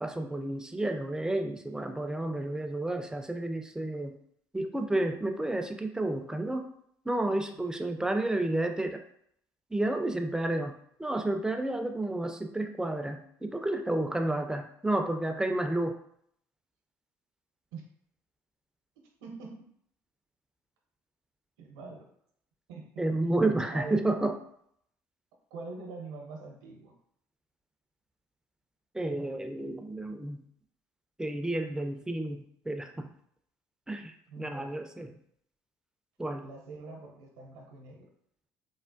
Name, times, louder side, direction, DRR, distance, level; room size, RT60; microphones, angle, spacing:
voice 1, 0.0-4.1 4.5-6.7 7.1-9.0 9.7-10.7 11.0-16.0 23.0-24.4 28.9-30.4 31.2-33.1 33.9-35.1 36.2-36.5, right 2 dB, 5° right, 6 dB, 0.4 m, -31 dB
voice 2, 19.2-19.6 21.6-22.1 22.7-22.9 23.7-24.0 25.5-26.9 34.3-34.7 36.4-38.1, right 3 dB, 75° right, 1 dB, 0.7 m, -43 dB
3.3 x 2.1 x 2.5 m, 0.69 s
hypercardioid pair, 60°, 9 cm